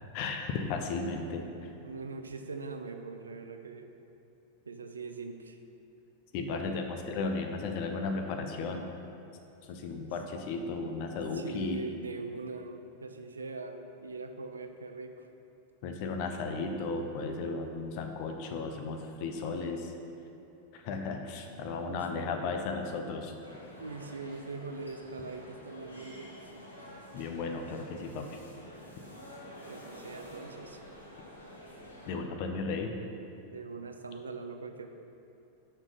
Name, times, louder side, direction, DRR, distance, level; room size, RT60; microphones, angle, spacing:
voice 1, 0.1-1.7 6.3-8.8 9.7-11.8 15.8-19.9 20.7-23.3 27.1-28.4 32.1-32.9, left 4 dB, 45° left, 4 dB, 0.6 m, -35 dB
voice 2, 1.8-3.9 4.7-5.6 11.3-15.3 21.9-22.4 23.8-26.3 29.7-30.8 33.5-34.9, right 4 dB, 75° right, 6 dB, 0.4 m, -42 dB
sound 1, 23.4-32.1, equal, 80° left, 1.0 m, -49 dB
5.9 x 4.3 x 5.1 m, 2.9 s
figure-of-eight pair, 90°, 0 cm